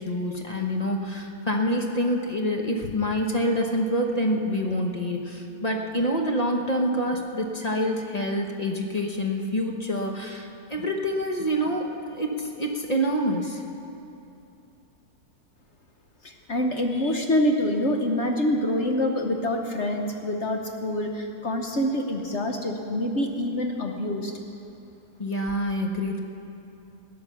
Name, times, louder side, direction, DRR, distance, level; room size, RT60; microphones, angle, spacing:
voice 1, 0.0-13.6 25.2-26.2, equal, 30° left, 1 dB, 1.0 m, -27 dB
voice 2, 16.2-24.3, left 1 dB, 50° left, 3 dB, 1.1 m, -26 dB
17.0 x 9.7 x 7.1 m, 2.8 s
omnidirectional pair, 1.7 m